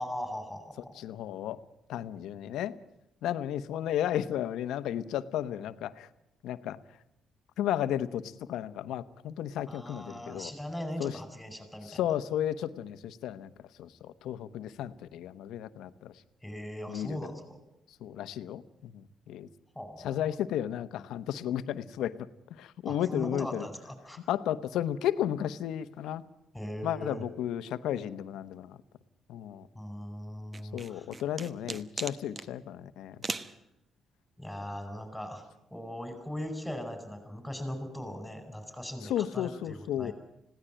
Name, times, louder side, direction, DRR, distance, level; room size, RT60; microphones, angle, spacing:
voice 1, 0.0-1.0 9.7-12.0 16.4-17.6 19.7-20.3 22.8-24.2 26.5-27.2 29.7-31.1 33.3-33.6 34.4-35.4 35.7-40.1, equal, 5° left, 8 dB, 5.1 m, -39 dB
voice 2, 1.0-1.6 1.9-2.7 3.2-6.1 6.4-6.8 7.6-10.5 11.0-11.2 11.8-13.5 13.8-16.1 16.9-17.2 18.0-19.5 20.0-22.1 22.6-23.7 24.3-26.2 26.8-28.8 29.3-29.7 30.7-33.2 39.0-40.1, left 11 dB, 85° left, 12 dB, 1.0 m, -33 dB
sound 1, 30.5-32.5 33.2-33.5, right 3 dB, 30° right, 1.2 m, -37 dB
21.0 x 16.5 x 9.0 m, 0.85 s
cardioid pair, 90°, 0 cm